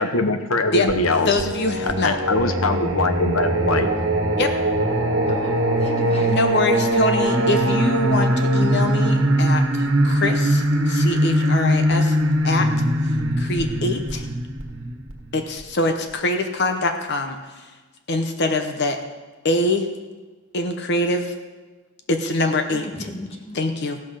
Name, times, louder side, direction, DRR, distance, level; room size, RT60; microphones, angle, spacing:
voice 1, 0.0-1.4 1.8-3.9, left 3 dB, 75° left, 7 dB, 1.1 m, -22 dB
Singing, 0.9-15.6, right 1 dB, 65° right, 1.5 m, -21 dB
voice 2, 1.3-2.2 4.4-4.5 6.3-12.2 12.4-12.7 13.4-14.3 15.3-17.4 18.1-19.0 19.4-19.9 20.5-21.3 22.1-22.9 23.5-24.0, left 2 dB, 50° left, 6 dB, 0.9 m, -24 dB
voice 3, 5.3-6.8 22.8-23.6, left 1 dB, 30° left, 2 dB, 1.6 m, -36 dB
16.0 x 6.0 x 6.5 m, 1.3 s
head